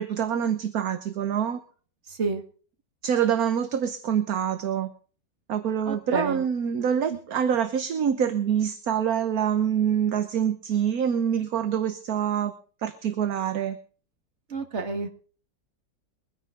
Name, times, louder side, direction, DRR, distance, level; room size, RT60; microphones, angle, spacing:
voice 1, 0.0-1.6 3.0-4.9 5.5-12.5 12.8-13.8, right 8 dB, 60° right, 10 dB, 1.3 m, -25 dB
voice 2, 5.9-6.4 14.5-15.1, right 3 dB, 40° right, 6 dB, 2.0 m, -29 dB
22.5 x 10.0 x 3.6 m, 0.40 s
omnidirectional pair, 1.9 m